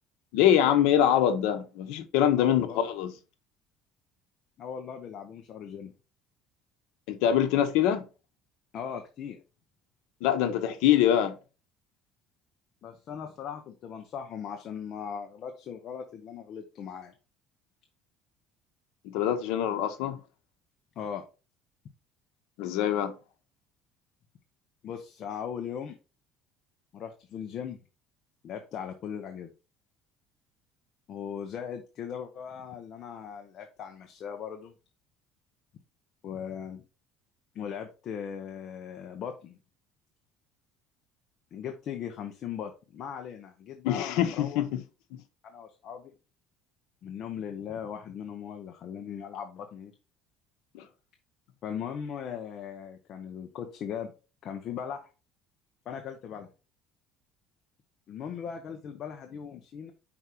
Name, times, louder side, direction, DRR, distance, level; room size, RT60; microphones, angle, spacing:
voice 1, 0.3-3.1 7.1-8.1 10.2-11.4 19.0-20.2 22.6-23.1 43.8-44.8 50.7-50.9, left 10 dB, 80° left, 1.1 m, -24 dB
voice 2, 2.4-2.8 4.6-5.9 8.7-9.4 12.8-17.1 21.0-21.2 24.8-26.0 26.9-27.8 28.4-29.5 31.1-34.7 36.2-36.8 37.5-39.6 41.5-44.6 45.4-46.1 47.0-49.9 51.6-54.1 54.4-55.1 55.9-56.5 58.1-59.9, left 8 dB, 40° left, 0.9 m, -39 dB
5.4 x 4.8 x 4.3 m
cardioid pair, 170°, 0 cm